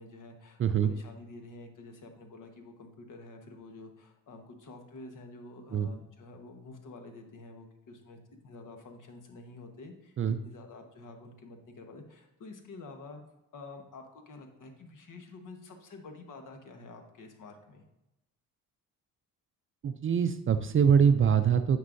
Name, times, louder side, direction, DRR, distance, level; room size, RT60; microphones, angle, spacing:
voice 1, 0.0-8.2 8.4-10.2 10.4-13.2 13.5-17.8, left 3 dB, 55° left, 4 dB, 1.3 m, -48 dB
voice 2, 0.6-0.9 5.7-5.9 10.2-10.4 19.8-21.8, right 7 dB, 35° right, 9 dB, 0.4 m, -24 dB
9.6 x 5.4 x 2.6 m, 0.90 s
cardioid pair, 80°, 37 cm